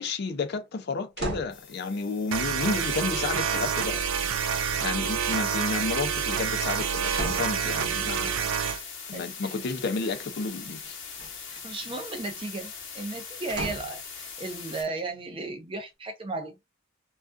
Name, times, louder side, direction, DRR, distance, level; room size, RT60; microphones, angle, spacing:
voice 1, 0.0-4.1 4.6-8.4 9.1-11.0, left 4 dB, 55° left, 0.4 m, -31 dB
sound 1, 1.2-1.6 4.1-4.8 5.8-6.2 7.1-7.6 11.1-11.7 13.5-14.0 14.7-14.8, right 1 dB, 60° right, 0.8 m, -36 dB
sound 2, 1.5-15.0, left 6 dB, 75° left, 0.8 m, -41 dB
sound 3, 2.3-8.8, right 7 dB, 80° right, 0.4 m, -28 dB
voice 2, 9.1-9.6 11.5-16.6, right 3 dB, 30° right, 0.5 m, -35 dB
2.3 x 2.3 x 2.4 m
head